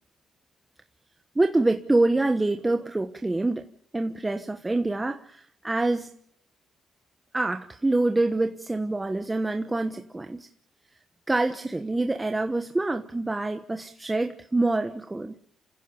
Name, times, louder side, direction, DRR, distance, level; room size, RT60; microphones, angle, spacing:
voice 1, 1.3-3.7 3.9-6.1 7.3-10.5 11.3-15.4, right 2 dB, 15° right, 6 dB, 1.2 m, -26 dB
28.0 x 16.0 x 7.1 m, 0.69 s
cardioid pair, 90°, 0 cm